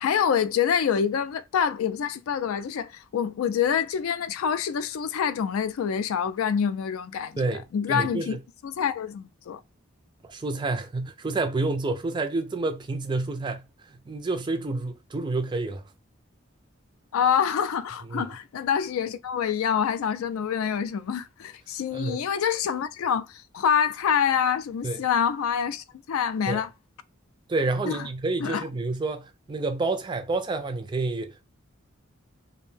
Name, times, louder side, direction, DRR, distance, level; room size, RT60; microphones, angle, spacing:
voice 1, 0.0-8.4 8.6-9.6 17.1-26.7 27.8-28.1 28.4-28.6, left 7 dB, 80° left, 0.3 m, -26 dB
voice 2, 7.4-8.4 10.3-15.8 18.1-18.3 21.9-22.2 24.8-25.0 26.5-26.6 27.5-31.4, right 3 dB, 20° right, 0.3 m, -29 dB
2.5 x 2.1 x 3.2 m
head